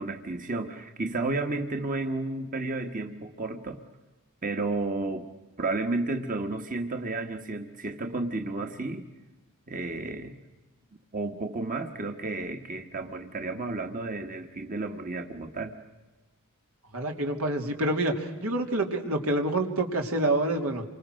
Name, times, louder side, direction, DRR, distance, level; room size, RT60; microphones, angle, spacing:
voice 1, 0.0-3.8 4.4-5.3 5.6-9.0 9.7-10.4 11.1-15.7, right 2 dB, 40° right, 5 dB, 1.4 m, -32 dB
voice 2, 16.9-20.8, right 1 dB, 85° right, 3 dB, 3.1 m, -27 dB
28.5 x 25.5 x 6.4 m, 1.2 s
head